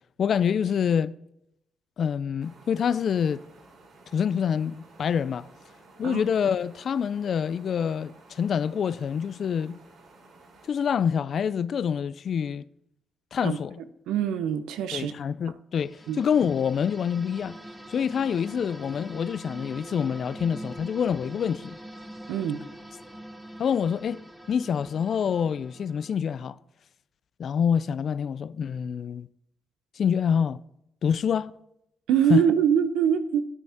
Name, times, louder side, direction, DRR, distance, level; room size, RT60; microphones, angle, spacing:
voice 1, 0.2-1.1 2.0-3.4 4.1-5.5 6.0-9.8 10.7-12.6 13.3-13.8 14.9-17.6 17.9-21.8 23.6-24.2 24.5-26.6 27.4-29.3 30.0-30.6 31.0-31.5 32.3-32.4, left 7 dB, 55° left, 0.4 m, -26 dB
sound 1, 2.4-10.7, right 2 dB, 60° right, 3.8 m, -54 dB
voice 2, 14.1-15.1 16.1-16.2 22.3-22.6 32.1-33.4, right 8 dB, 90° right, 0.8 m, -23 dB
sound 2, 15.7-26.2, right 1 dB, 5° right, 1.3 m, -44 dB
12.0 x 9.5 x 3.6 m
cardioid pair, 90°, 0 cm